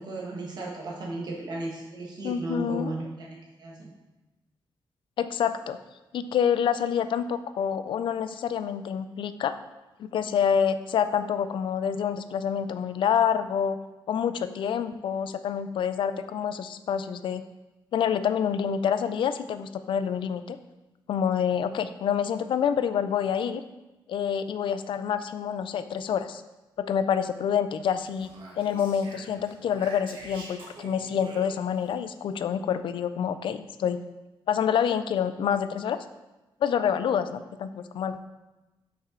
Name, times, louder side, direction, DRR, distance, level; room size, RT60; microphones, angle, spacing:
voice 1, 0.0-3.9, right 2 dB, 55° right, -3 dB, 1.2 m, -35 dB
voice 2, 2.2-2.9 5.2-5.8 6.1-9.5 10.0-13.8 14.1-17.4 17.9-20.6 21.1-23.6 24.1-26.4 26.8-28.3 28.6-34.0 34.5-36.0 36.6-38.2, left 8 dB, 70° left, 12 dB, 0.4 m, -27 dB
Speech, 28.0-31.9, right 2 dB, 85° right, 1.4 m, -46 dB
6.3 x 5.6 x 3.7 m, 1.1 s
wide cardioid pair, 170°, 9 cm